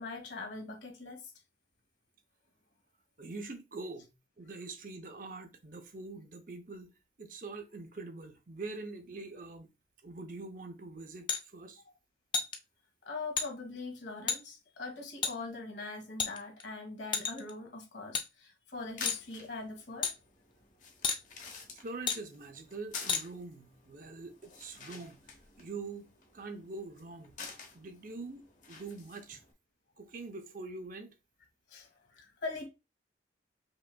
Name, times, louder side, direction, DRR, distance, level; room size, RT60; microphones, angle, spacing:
voice 1, 0.0-1.3 11.9-12.0 13.0-20.1 31.7-32.7, left 3 dB, 90° left, 1.5 m, -42 dB
voice 2, 3.2-4.1 4.4-6.9 7.2-9.7 10.0-11.8 21.8-25.3 25.6-27.4 27.7-29.4 30.0-31.1, right 3 dB, 50° right, 0.7 m, -44 dB
sound 1, 11.3-11.4 12.3-12.6 13.4-13.5 14.3-14.4 15.2-15.3 16.2-16.6 17.1-17.5 18.1-18.3 19.1-19.2 20.0-20.1 21.0-21.2 22.1-22.2 23.1-23.2, left 6 dB, 25° left, 0.4 m, -31 dB
sound 2, 18.7-29.5, left 5 dB, 45° left, 0.9 m, -49 dB
5.1 x 3.3 x 2.2 m
head